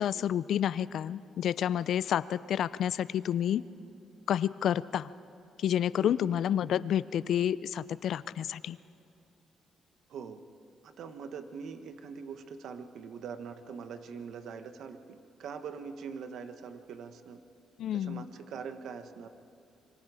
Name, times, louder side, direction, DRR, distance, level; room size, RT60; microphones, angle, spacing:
voice 1, 0.0-3.6 4.3-5.1 5.6-8.8 17.8-18.2, left 10 dB, 70° left, 18 dB, 0.5 m, -29 dB
voice 2, 6.0-6.3 10.1-10.4 10.8-17.4 17.9-19.3, right 6 dB, 70° right, 9 dB, 1.2 m, -43 dB
26.0 x 23.5 x 4.9 m, 2.6 s
cardioid pair, 90°, 0 cm